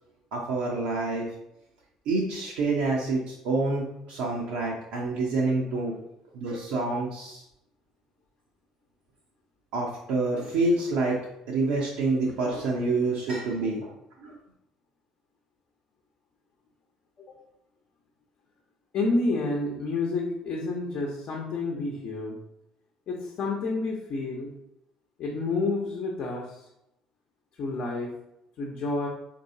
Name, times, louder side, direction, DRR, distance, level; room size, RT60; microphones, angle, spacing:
voice 1, 0.3-1.3 2.1-6.0 6.3-7.4 9.7-11.2 11.5-13.9 14.2-14.3, right 3 dB, 65° right, -3 dB, 0.7 m, -27 dB
voice 2, 18.9-22.4 23.1-24.5 25.2-26.6 27.6-28.1 28.6-29.1, left 3 dB, 55° left, -1 dB, 0.8 m, -29 dB
4.5 x 2.8 x 2.7 m, 0.83 s
figure-of-eight pair, 50°, 2 cm